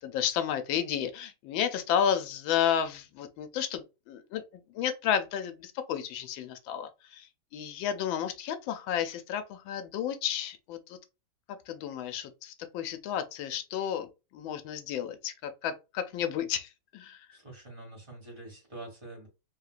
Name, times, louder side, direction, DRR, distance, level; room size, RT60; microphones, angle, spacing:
voice 1, 0.0-4.4 4.7-7.3 7.5-11.0 11.5-14.1 14.3-17.3, left 9 dB, 85° left, 1.4 m, -32 dB
voice 2, 17.3-19.3, right 2 dB, 15° right, 1.3 m, -45 dB
3.4 x 2.8 x 2.4 m
omnidirectional pair, 2.1 m